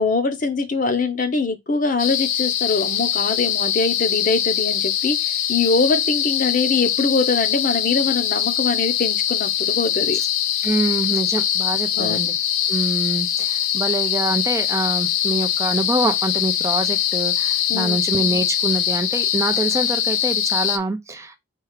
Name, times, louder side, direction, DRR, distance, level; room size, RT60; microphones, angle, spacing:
voice 1, 0.0-10.2 11.9-12.2 17.7-18.0, left 3 dB, 40° left, 0.7 m, -23 dB
sound 1, 2.0-20.8, left 10 dB, 90° left, 0.6 m, -22 dB
voice 2, 10.6-12.4 12.7-21.4, right 2 dB, 15° right, 0.4 m, -25 dB
4.5 x 2.4 x 4.7 m
head